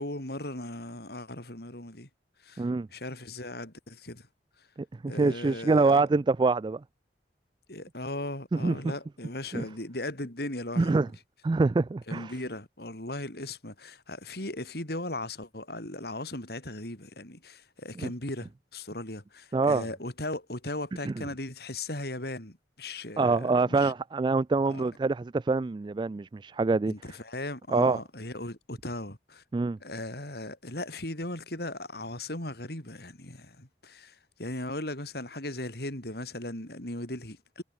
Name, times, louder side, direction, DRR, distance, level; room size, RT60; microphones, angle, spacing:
voice 1, 0.0-2.1 2.4-4.3 4.6-4.7 5.1-6.0 7.7-11.1 12.1-23.9 24.7-24.8 26.9-29.4 29.8-37.6, left 1 dB, 60° left, 5.2 m, -38 dB
voice 2, 2.6-2.9 5.0-6.8 8.5-8.8 9.5-9.6 10.8-11.1 11.4-12.3 18.0-18.1 19.5-19.9 21.0-21.1 23.2-26.9 27.7-28.0 29.5-29.8, right 3 dB, 25° right, 0.3 m, -25 dB
head